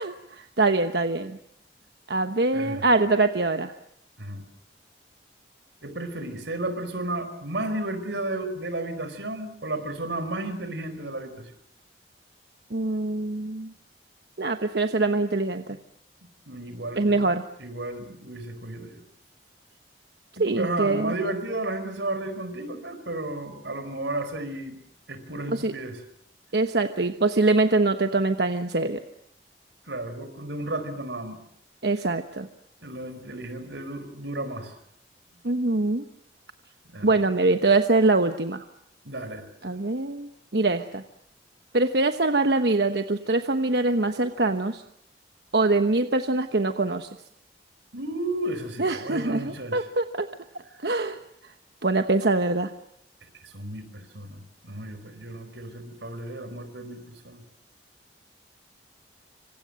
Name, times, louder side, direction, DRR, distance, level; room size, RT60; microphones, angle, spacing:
voice 1, 0.0-1.4 2.1-3.7 12.7-13.7 14.4-15.8 17.0-17.4 20.4-21.1 25.5-25.7 26.5-29.0 31.8-32.5 35.4-36.0 37.0-38.6 39.6-41.0 41.7-44.8 45.5-47.1 48.8-50.3 50.8-51.2 51.4-51.5 51.8-52.7, right 2 dB, 65° right, 7 dB, 1.1 m, -24 dB
voice 2, 2.5-2.8 4.2-4.4 5.8-11.5 16.5-17.3 17.6-19.0 20.4-24.8 25.1-26.0 29.8-31.4 32.8-34.7 36.8-37.2 39.0-39.4 47.9-49.8 50.7-50.9 53.2-57.4, right 2 dB, 90° right, 10 dB, 4.9 m, -33 dB
27.0 x 25.5 x 7.7 m, 0.71 s
head